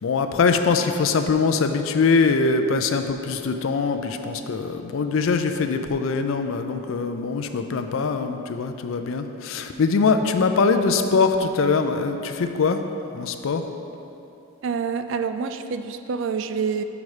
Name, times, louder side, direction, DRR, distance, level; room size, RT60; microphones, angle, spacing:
voice 1, 0.0-12.8 13.1-13.6, left 4 dB, 65° left, 7 dB, 0.4 m, -22 dB
voice 2, 14.6-16.8, right 6 dB, 60° right, 9 dB, 0.3 m, -27 dB
6.0 x 5.3 x 4.8 m, 2.9 s
head